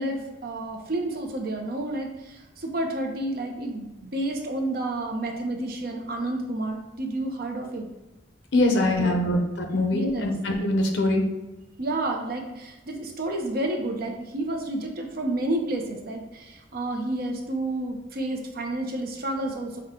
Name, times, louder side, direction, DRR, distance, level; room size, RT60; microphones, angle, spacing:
voice 1, 0.0-7.9 8.6-9.3 9.9-10.3 11.8-19.8, right 1 dB, 55° right, 2 dB, 0.7 m, -30 dB
voice 2, 8.5-11.2, left 1 dB, 75° left, 3 dB, 0.8 m, -23 dB
5.7 x 2.3 x 3.7 m, 1.0 s
head